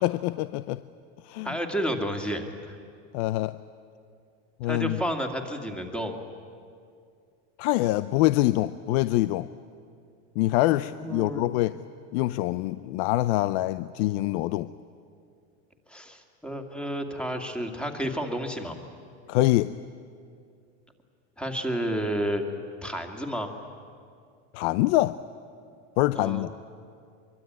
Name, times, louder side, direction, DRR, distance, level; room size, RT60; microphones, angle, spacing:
voice 1, 0.0-0.8 1.2-1.6 3.1-3.6 4.6-5.0 7.6-9.5 10.4-11.8 12.1-14.7 19.3-19.8 24.5-25.2 26.0-26.5, left 17 dB, 60° left, 14 dB, 0.6 m, -25 dB
voice 2, 1.4-2.8 4.6-6.1 10.9-11.5 15.9-18.8 21.4-22.5 22.8-23.5 26.1-26.5, equal, 5° left, 4 dB, 2.2 m, -31 dB
24.0 x 23.5 x 9.4 m, 2.3 s
supercardioid pair, 140°, 38 cm